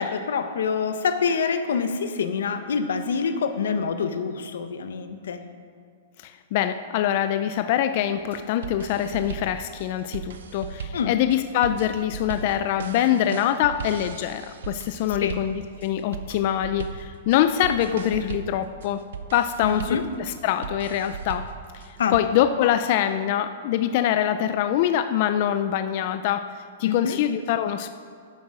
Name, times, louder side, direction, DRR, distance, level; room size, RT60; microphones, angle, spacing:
voice 1, 0.0-5.5 10.9-11.1 15.1-15.4 19.6-20.0 22.0-22.1 26.8-27.2, left 6 dB, 90° left, 9 dB, 1.0 m, -26 dB
voice 2, 6.2-19.0 19.3-21.5 21.7-27.9, left 11 dB, 35° left, 9 dB, 0.4 m, -24 dB
sound 1, 8.2-22.2, right 6 dB, 80° right, 0.8 m, -38 dB
11.5 x 8.6 x 4.9 m, 2.2 s
supercardioid pair, 170°, 0 cm